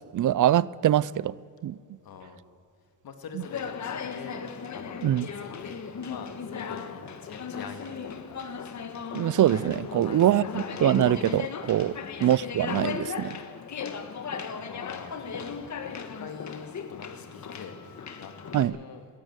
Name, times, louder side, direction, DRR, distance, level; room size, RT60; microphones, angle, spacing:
voice 1, 0.0-1.3 1.6-1.8 5.0-5.3 9.1-12.0 12.2-13.4 18.5-18.7, right 12 dB, 60° right, 0.5 m, -23 dB
voice 2, 2.0-2.4 3.0-8.4 9.8-10.7 11.8-12.2 14.6-19.1, left 6 dB, 80° left, 2.5 m, -45 dB
Conversation, 3.4-18.6, left 6 dB, 50° left, 1.5 m, -37 dB
21.5 x 17.5 x 8.1 m
cardioid pair, 120°, 35 cm